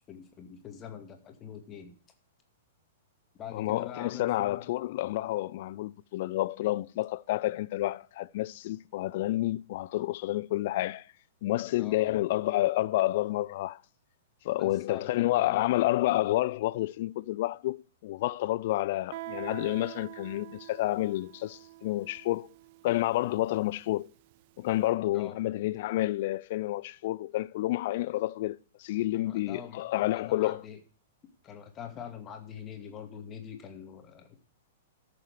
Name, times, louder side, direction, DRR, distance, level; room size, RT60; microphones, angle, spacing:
voice 1, 0.0-1.9 3.4-4.6 11.8-12.1 14.6-15.7 25.1-25.4 29.1-30.8 31.4-34.4, left 8 dB, 25° left, 2.2 m, -44 dB
voice 2, 3.5-11.1 11.4-13.8 14.4-22.5 22.8-24.1 24.6-30.6, left 16 dB, 50° left, 0.4 m, -29 dB
Guitar, 19.1-24.6, right 19 dB, 45° right, 0.4 m, -46 dB
13.5 x 7.0 x 4.9 m
figure-of-eight pair, 105°, 0 cm